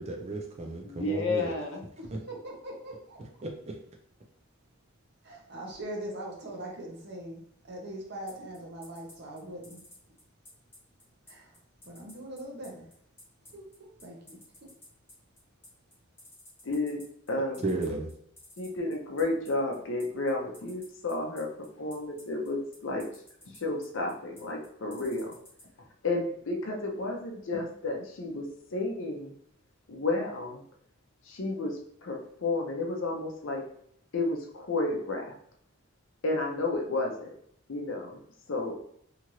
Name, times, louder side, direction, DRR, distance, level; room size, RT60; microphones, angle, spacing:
voice 1, 0.0-1.5 3.4-3.7 17.6-18.1, right 2 dB, 30° right, 1 dB, 0.4 m, -33 dB
voice 2, 0.8-1.8 16.6-17.0 17.3-17.7 18.6-23.1 23.5-25.4 26.0-29.3 29.9-30.6 31.2-33.6 34.1-35.3 36.2-37.3 37.7-38.2 38.5-38.7, left 2 dB, 60° left, 0 dB, 0.6 m, -32 dB
voice 3, 2.0-3.2 5.2-9.8 11.3-12.9 13.4-14.7, right 1 dB, 50° right, -1 dB, 0.8 m, -42 dB
sound 1, 8.3-25.6, left 1 dB, 10° left, 0.7 m, -52 dB
2.9 x 2.5 x 3.0 m, 0.68 s
head